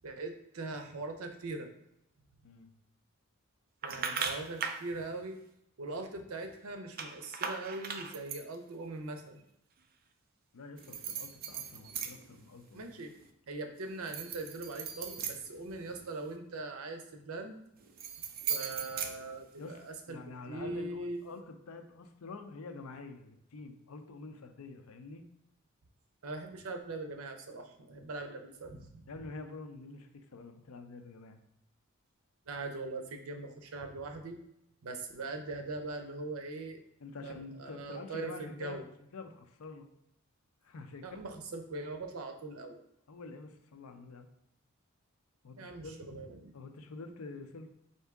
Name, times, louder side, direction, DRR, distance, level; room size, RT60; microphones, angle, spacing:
voice 1, 0.0-1.7 3.8-5.4 5.8-9.4 12.7-13.1 13.5-17.6 18.5-20.2 20.5-21.2 26.2-28.9 32.5-34.4 34.8-36.8 37.2-38.8 41.0-42.8 45.6-46.5, right 2 dB, 90° right, 6 dB, 0.6 m, -41 dB
sound 1, 3.8-4.9 7.0-8.6 10.8-12.4 12.8-13.3 13.9-16.2 17.8-19.9, right 6 dB, 45° right, 0.4 m, -38 dB
voice 2, 3.9-4.6 10.5-12.9 19.6-25.2 29.1-31.4 37.0-38.8 39.1-39.9 40.6-41.2 43.1-44.3 45.4-46.0 46.5-47.7, left 3 dB, 90° left, 7 dB, 0.5 m, -47 dB
4.4 x 2.7 x 3.5 m, 0.80 s
head